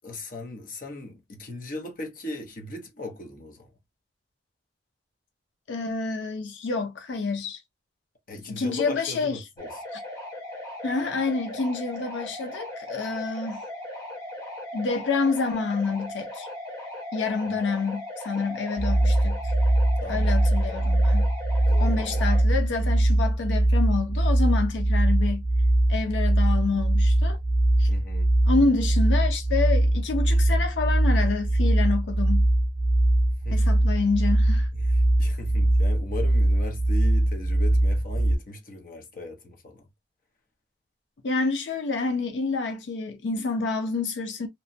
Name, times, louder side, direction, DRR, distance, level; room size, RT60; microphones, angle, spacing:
voice 1, 0.0-3.7 8.3-9.8 20.0-21.1 21.6-22.2 27.9-28.3 33.4-33.9 34.8-39.9, left 2 dB, 50° left, 0.7 m, -39 dB
voice 2, 5.7-7.6 8.5-9.4 9.9-10.0 10.8-13.6 14.7-16.5 17.1-19.5 20.1-21.3 21.8-25.4 25.9-27.4 27.8-27.9 28.5-32.5 33.5-34.7 41.2-44.5, left 4 dB, 85° left, 0.5 m, -28 dB
sound 1, 9.6-22.4, left 1 dB, 20° left, 1.1 m, -38 dB
sound 2, 18.8-38.4, right 1 dB, 10° right, 0.5 m, -21 dB
2.9 x 2.1 x 2.5 m
head